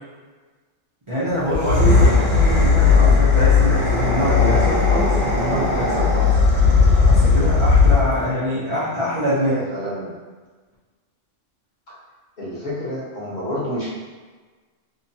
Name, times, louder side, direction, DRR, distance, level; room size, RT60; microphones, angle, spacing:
voice 1, 1.1-9.6, equal, 35° right, -11 dB, 0.5 m, -25 dB
sound 1, 1.4-8.2, left 4 dB, 80° right, 1.2 m, -16 dB
voice 2, 9.5-10.2 12.4-13.9, equal, 40° left, -8 dB, 1.0 m, -29 dB
2.9 x 2.2 x 2.7 m, 1.4 s
omnidirectional pair, 1.3 m